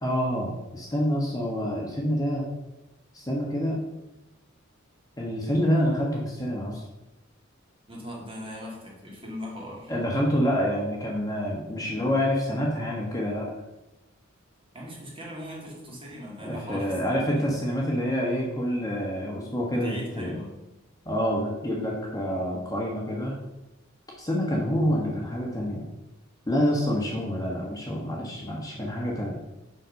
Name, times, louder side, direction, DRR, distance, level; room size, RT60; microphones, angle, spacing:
voice 1, 0.0-2.5 3.1-3.8 5.2-6.8 9.9-13.5 16.4-20.4 21.0-23.3 24.2-25.9 26.5-29.4, equal, 20° left, -2 dB, 1.4 m, -27 dB
voice 2, 7.9-9.9 14.7-17.5 19.7-20.5, equal, 25° right, -3 dB, 2.6 m, -39 dB
7.6 x 6.2 x 5.3 m, 0.98 s
head